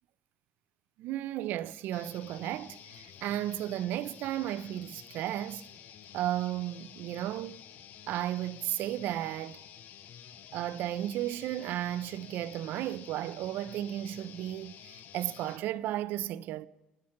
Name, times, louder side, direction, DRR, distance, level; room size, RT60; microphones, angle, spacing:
voice 1, 1.0-5.6 6.1-7.6 8.1-9.6 10.5-16.7, right 13 dB, 70° right, 0.3 m, -34 dB
sound 1, 1.9-15.6, left 9 dB, 60° left, 0.5 m, -51 dB
10.5 x 6.4 x 5.7 m
cardioid pair, 145°, 3 cm